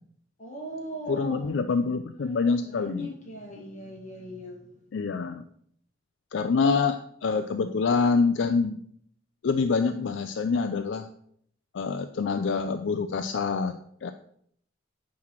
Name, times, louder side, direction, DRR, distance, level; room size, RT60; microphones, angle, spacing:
voice 1, 0.4-1.5 2.3-4.6, equal, 40° left, 0 dB, 1.6 m, -39 dB
voice 2, 1.1-3.1 4.9-5.4 6.3-8.8 9.4-11.1 11.7-14.1, left 4 dB, 80° left, 9 dB, 0.4 m, -26 dB
9.5 x 3.2 x 5.8 m, 0.66 s
head